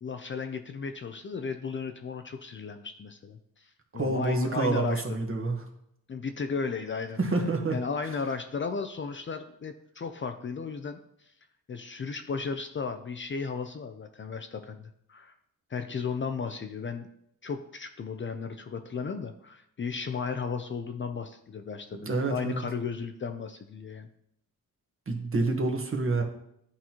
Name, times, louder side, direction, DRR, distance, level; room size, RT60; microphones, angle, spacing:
voice 1, 0.0-5.2 6.1-11.0 11.7-15.3 15.7-17.1 17.4-24.1, left 5 dB, 35° left, 7 dB, 0.5 m, -35 dB
voice 2, 3.9-5.6 7.2-7.8 22.0-22.6 25.1-26.2, right 3 dB, 40° right, 3 dB, 1.2 m, -28 dB
11.0 x 4.0 x 3.0 m, 0.74 s
cardioid pair, 100°, 34 cm